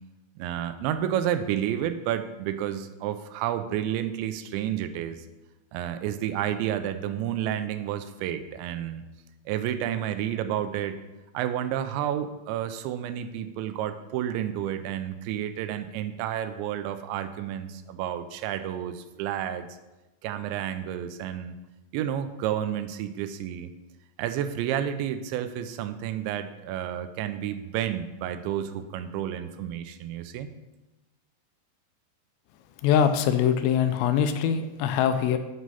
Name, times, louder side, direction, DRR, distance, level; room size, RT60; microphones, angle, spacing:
voice 1, 0.4-5.3 5.7-9.0 9.5-11.0 11.3-19.7 20.2-21.6 21.9-23.7 24.2-30.5, right 10 dB, 90° right, 10 dB, 2.9 m, -30 dB
voice 2, 32.8-35.4, left 8 dB, 85° left, 9 dB, 2.8 m, -23 dB
8.6 x 6.2 x 5.5 m, 1.1 s
omnidirectional pair, 5.1 m